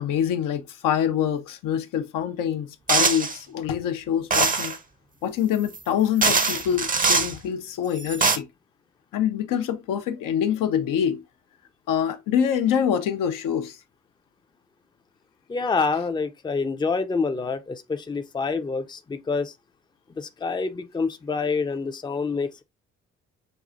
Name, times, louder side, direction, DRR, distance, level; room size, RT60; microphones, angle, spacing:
voice 1, 0.0-4.7 5.2-8.4 9.1-11.2 11.9-13.8, left 9 dB, 65° left, 0.6 m, -25 dB
sound 1, 2.9-3.4 4.3-4.8 5.7-5.8 6.2-7.3 8.0-8.4, right 4 dB, 25° right, 0.6 m, -22 dB
voice 2, 15.5-19.5 20.1-22.6, left 4 dB, 15° left, 0.5 m, -27 dB
5.3 x 2.4 x 2.4 m
hypercardioid pair, 45°, 35 cm